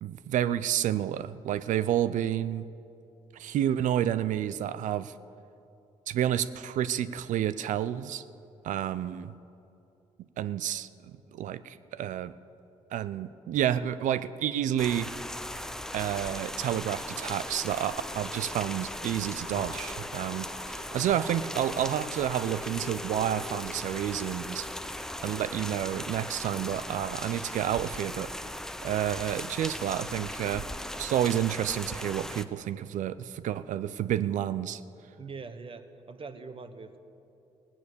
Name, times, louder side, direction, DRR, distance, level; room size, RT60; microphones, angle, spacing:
voice 1, 0.0-2.7 3.3-5.1 6.1-8.2 8.6-9.3 10.4-10.9 11.3-12.3 12.9-15.1 15.9-24.7 25.2-28.3 28.8-30.6 31.0-34.8, right 11 dB, 65° right, 15 dB, 0.5 m, -30 dB
sound 1, 14.8-32.4, left 1 dB, 5° left, 0.6 m, -38 dB
sound 2, 15.3-29.4, left 5 dB, 65° left, 1.4 m, -50 dB
voice 2, 35.2-37.0, right 4 dB, 40° right, 9 dB, 1.2 m, -43 dB
17.0 x 9.3 x 6.9 m, 2.7 s
supercardioid pair, 60°, 14 cm